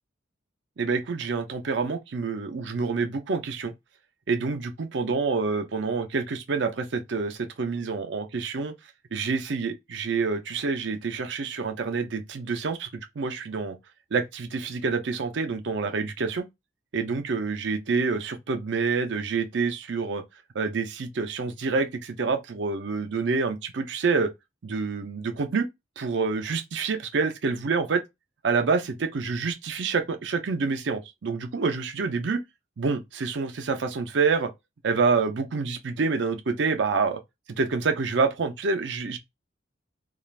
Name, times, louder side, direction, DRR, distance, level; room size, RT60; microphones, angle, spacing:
voice 1, 0.8-3.7 4.3-8.7 9.1-13.8 14.1-16.5 16.9-20.2 20.5-24.3 24.6-25.7 26.0-28.0 28.4-32.4 32.8-34.5 34.8-37.2 37.6-39.2, right 4 dB, 65° right, 0.5 m, -27 dB
2.4 x 2.4 x 3.1 m
head